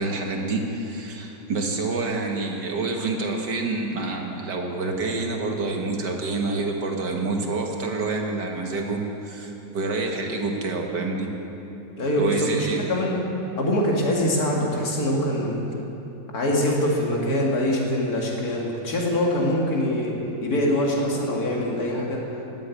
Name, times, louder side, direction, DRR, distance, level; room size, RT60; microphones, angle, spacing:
voice 1, 0.0-11.3 12.2-12.9, right 3 dB, 65° right, 1 dB, 2.2 m, -27 dB
voice 2, 12.0-13.2 13.5-15.6 16.3-22.2, left 1 dB, 55° left, -2 dB, 2.7 m, -24 dB
19.0 x 8.3 x 8.4 m, 2.9 s
omnidirectional pair, 2.0 m